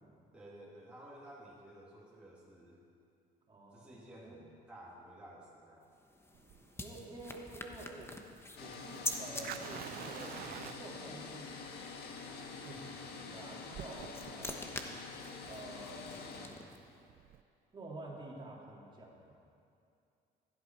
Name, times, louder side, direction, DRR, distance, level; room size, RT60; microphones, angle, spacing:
voice 1, 0.3-2.8 3.7-5.9, right 1 dB, 5° right, -6 dB, 2.2 m, -53 dB
voice 2, 3.5-3.9 4.2-4.4 6.8-8.2 8.6-11.4 12.6-14.6 15.4-16.8 17.7-19.4, right 2 dB, 30° right, -3 dB, 2.6 m, -49 dB
sound 1, 5.8-9.4 13.6-16.9, left 2 dB, 15° left, 1.1 m, -45 dB
Fire, 6.3-17.4, right 11 dB, 65° right, 0.5 m, -50 dB
sound 2, 8.6-16.5, left 4 dB, 70° left, 1.6 m, -46 dB
16.0 x 12.0 x 4.5 m, 2.5 s
cardioid pair, 110°, 17 cm